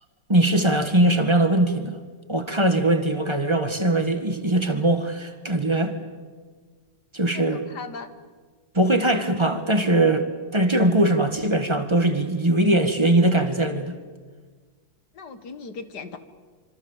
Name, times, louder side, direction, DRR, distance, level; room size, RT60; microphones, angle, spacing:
voice 1, 0.3-2.0 2.3-6.0 7.1-7.7 8.7-14.0, right 1 dB, 15° right, 7 dB, 1.8 m, -21 dB
voice 2, 7.3-8.1 15.1-16.2, left 4 dB, 60° left, 9 dB, 2.2 m, -38 dB
26.5 x 26.0 x 7.4 m, 1.5 s
omnidirectional pair, 2.0 m